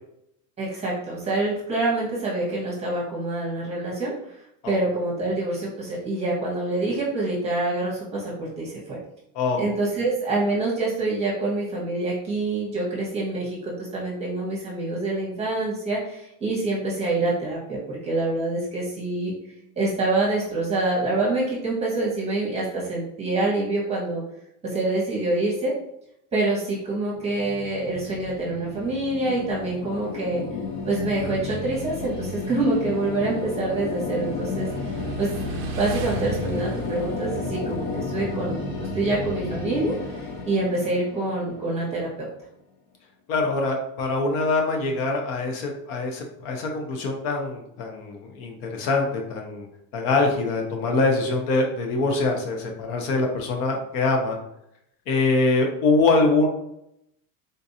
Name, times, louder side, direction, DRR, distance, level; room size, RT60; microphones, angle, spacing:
voice 1, 0.6-4.1 4.7-9.0 9.6-19.3 19.8-24.2 24.6-25.8 26.3-30.4 30.9-34.7 35.2-35.3 35.8-38.6 38.9-42.3, right 2 dB, 15° right, -5 dB, 1.0 m, -26 dB
sound 1, 27.1-42.2, left 4 dB, 40° left, 1.0 m, -33 dB
Motorcycle / Engine, 30.7-40.4, right 1 dB, 35° right, 0.4 m, -37 dB
voice 2, 43.3-49.7 49.9-54.4 55.1-56.5, left 3 dB, 65° left, 2 dB, 0.8 m, -24 dB
3.8 x 2.5 x 2.7 m, 0.78 s
cardioid pair, 170°, 40 cm